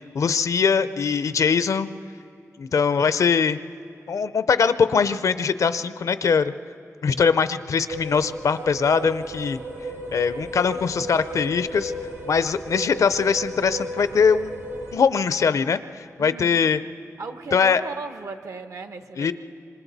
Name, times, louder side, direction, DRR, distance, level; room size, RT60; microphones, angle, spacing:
voice 1, 0.1-1.9 2.6-3.6 4.1-6.5 7.0-9.6 10.1-11.9 12.3-14.6 14.9-16.8 17.5-17.8 19.2-19.3, left 6 dB, 75° left, 13 dB, 0.5 m, -21 dB
sound 1, 7.9-15.0, equal, 90° right, 3.9 m, -34 dB
voice 2, 16.2-16.7 17.2-19.3, right 3 dB, 75° right, 8 dB, 1.0 m, -36 dB
26.0 x 26.0 x 4.1 m, 2.6 s
wide cardioid pair, 130°, 6 cm